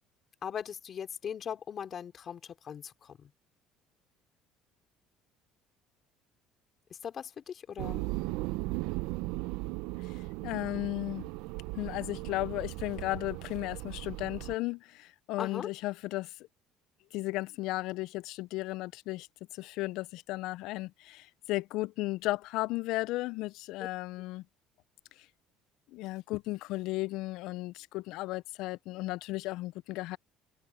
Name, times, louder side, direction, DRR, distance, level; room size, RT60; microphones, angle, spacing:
voice 1, 0.4-3.3 6.9-8.0 15.4-15.7, left 8 dB, 40° left, 3.0 m, -39 dB
sound 1, 7.8-14.6, right 20 dB, 85° right, 0.6 m, -37 dB
voice 2, 10.0-11.3 11.8-16.3 17.1-19.3 19.5-24.4 25.9-30.2, left 19 dB, 75° left, 0.3 m, -35 dB
cardioid pair, 120°, 0 cm